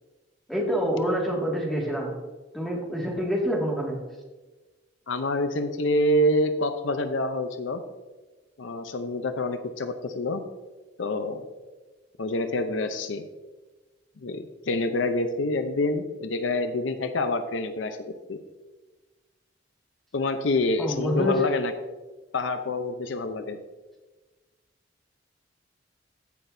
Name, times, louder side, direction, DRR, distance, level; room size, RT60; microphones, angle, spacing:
voice 1, 0.5-2.1 2.5-4.0 20.8-21.4, equal, ahead, -2 dB, 2.0 m, -26 dB
voice 2, 5.1-7.8 8.6-10.4 11.0-11.5 12.2-13.2 14.2-18.4 20.1-21.7 22.3-23.6, left 1 dB, 75° left, 9 dB, 0.6 m, -27 dB
15.5 x 6.1 x 2.7 m, 1.2 s
head